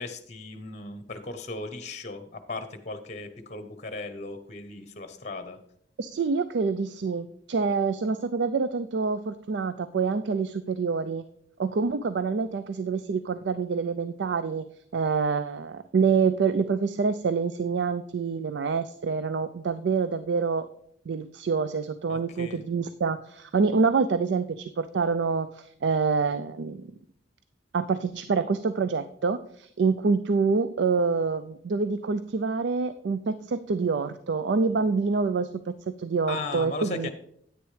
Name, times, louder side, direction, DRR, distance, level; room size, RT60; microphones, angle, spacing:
voice 1, 0.0-5.6 22.1-22.6 36.3-37.1, left 3 dB, 40° left, 9 dB, 0.9 m, -37 dB
voice 2, 6.0-11.2 11.6-14.6 14.9-20.7 21.1-26.9 27.7-37.1, right 5 dB, 65° right, 12 dB, 0.4 m, -26 dB
10.0 x 9.1 x 3.2 m, 0.69 s
head